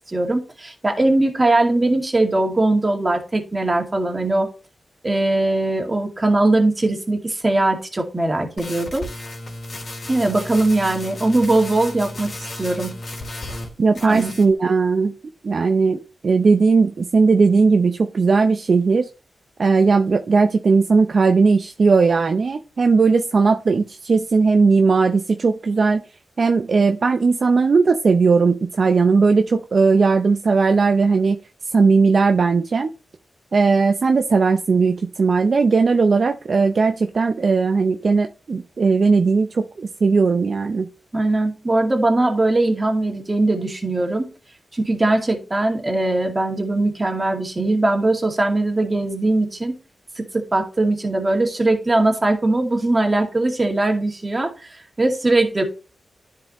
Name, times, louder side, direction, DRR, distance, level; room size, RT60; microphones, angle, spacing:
voice 1, 0.1-4.5 5.0-9.1 10.1-13.0 14.0-14.3 41.1-44.3 44.7-49.7 50.2-55.6, right 2 dB, 30° right, 2 dB, 2.2 m, -20 dB
sound 1, 8.6-13.7 14.0-14.5, left 1 dB, 50° left, 3.1 m, -34 dB
voice 2, 13.8-15.1 15.4-19.1 19.6-26.0 26.4-31.4 31.7-32.9 33.5-40.9, right 4 dB, 60° right, 6 dB, 0.6 m, -17 dB
10.5 x 4.9 x 3.0 m, 0.33 s
cardioid pair, 50°, 0 cm